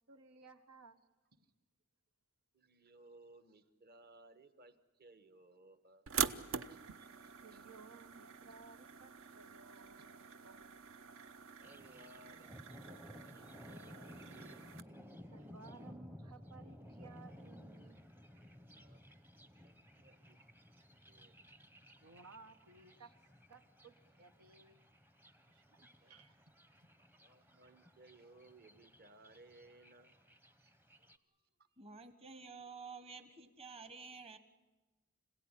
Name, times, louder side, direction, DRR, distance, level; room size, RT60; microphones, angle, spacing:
voice 1, 0.1-1.0 7.4-10.7 15.3-18.0 18.4-18.5 22.0-23.2 23.5-24.9 25.5-26.3, right 4 dB, 85° right, 8 dB, 1.2 m, -59 dB
voice 2, 2.5-6.1 6.4-7.6 11.6-14.7 18.7-19.0 19.6-19.7 20.0-20.4 21.1-21.4 22.9-23.1 25.8-26.2 27.2-30.1, right 2 dB, 45° right, 10 dB, 1.4 m, -62 dB
sound 1, 6.1-14.8, right 7 dB, 65° right, 0.8 m, -44 dB
Thunder, 11.6-31.2, left 1 dB, 10° right, 0.8 m, -57 dB
voice 3, 31.8-34.4, right 4 dB, 25° right, 10 dB, 1.4 m, -51 dB
26.0 x 17.0 x 9.9 m, 1.2 s
head